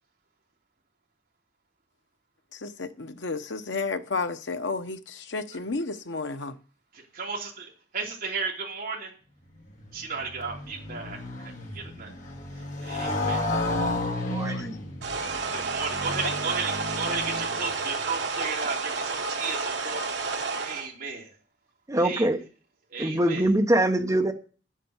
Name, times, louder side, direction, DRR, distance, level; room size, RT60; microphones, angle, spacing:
voice 1, 2.5-6.5 14.5-14.7, left 3 dB, 75° left, 0.9 m, -32 dB
voice 2, 6.9-9.1 9.9-12.1 12.8-13.5 14.4-14.6 15.5-20.1 20.5-21.4 21.9-22.3 22.9-23.5, right 4 dB, 55° right, 3.0 m, -34 dB
Motorcycle, 9.7-17.8, left 2 dB, 45° left, 2.7 m, -32 dB
voice 3, 14.3-14.8 21.9-22.4 23.0-24.3, right 1 dB, 20° right, 1.0 m, -23 dB
sound 1, 15.0-20.9, right 4 dB, 70° right, 1.4 m, -31 dB
10.0 x 7.6 x 8.0 m
head